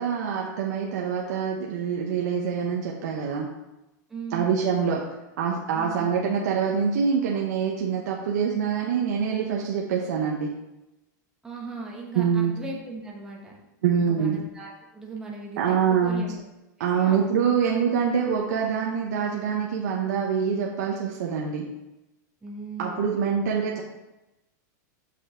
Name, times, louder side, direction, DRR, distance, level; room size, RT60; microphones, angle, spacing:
voice 1, 0.0-3.5 4.3-5.0 5.4-10.5 12.2-12.5 13.8-14.4 15.6-16.2 16.8-21.7 22.8-23.8, right 7 dB, 65° right, -1 dB, 0.9 m, -25 dB
voice 2, 4.1-4.9 5.7-6.3 11.4-13.6 14.0-16.4 17.0-17.3 17.6-17.7 18.1-18.2 22.4-23.6, right 3 dB, 5° right, -3 dB, 1.0 m, -38 dB
6.2 x 5.7 x 3.7 m, 0.98 s
supercardioid pair, 175°, 10 cm